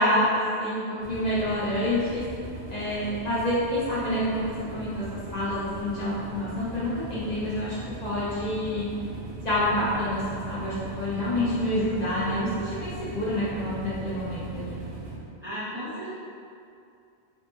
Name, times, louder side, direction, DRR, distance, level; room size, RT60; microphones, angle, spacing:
voice 1, 0.0-2.2 2.7-5.0 5.3-8.9 9.4-14.8, left 1 dB, 50° left, -9 dB, 0.6 m, -27 dB
sound 1, 1.0-15.2, right 2 dB, 70° right, 0.9 m, -39 dB
voice 2, 15.4-16.1, equal, 35° right, -12 dB, 0.5 m, -34 dB
3.2 x 2.0 x 2.9 m, 2.5 s
omnidirectional pair, 1.1 m